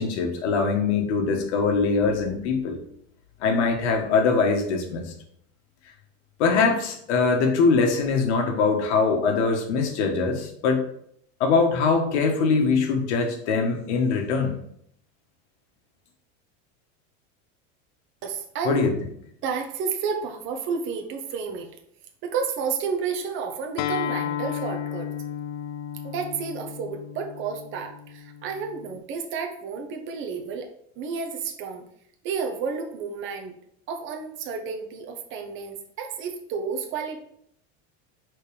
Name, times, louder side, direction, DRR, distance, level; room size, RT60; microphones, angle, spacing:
voice 1, 0.0-2.8 3.4-5.0 6.4-10.8 11.4-14.6 18.6-18.9, left 4 dB, 85° left, 3 dB, 1.6 m, -22 dB
voice 2, 18.2-18.9 19.4-21.7 22.2-25.1 26.0-30.7 31.0-31.8 32.2-33.5 33.9-37.2, right 5 dB, 35° right, 4 dB, 1.0 m, -31 dB
Acoustic guitar, 23.8-29.0, left 10 dB, 50° left, 0.5 m, -33 dB
5.2 x 4.3 x 4.9 m, 0.69 s
supercardioid pair, 160°, 33 cm